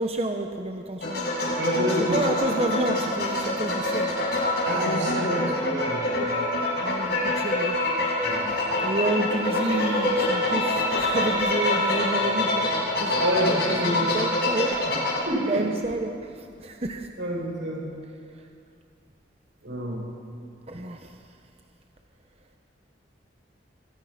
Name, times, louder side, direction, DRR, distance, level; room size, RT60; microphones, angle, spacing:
voice 1, 0.0-1.3 2.0-4.1 6.2-6.3 6.8-7.8 8.5-13.2 13.5-17.1 20.7-21.2, right 1 dB, 30° right, 4 dB, 1.0 m, -30 dB
sound 1, 1.0-15.2, left 1 dB, 55° left, 7.2 m, -25 dB
voice 2, 1.6-2.2 4.6-6.2 8.2-8.5 13.2-14.1 15.3-15.7 17.2-17.8 19.6-20.1, right 1 dB, 85° right, -2 dB, 7.7 m, -28 dB
26.5 x 23.5 x 5.9 m, 2.3 s
head